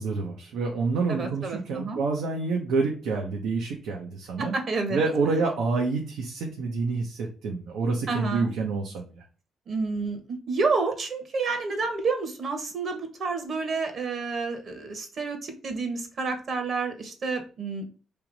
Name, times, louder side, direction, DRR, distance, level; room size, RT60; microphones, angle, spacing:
voice 1, 0.0-4.5 4.9-9.2, right 4 dB, 80° right, 0 dB, 1.0 m, -28 dB
voice 2, 1.1-2.0 4.4-5.4 8.1-8.5 9.7-17.8, right 4 dB, 50° right, 5 dB, 1.4 m, -29 dB
3.5 x 3.0 x 4.8 m, 0.37 s
cardioid pair, 90°, 0 cm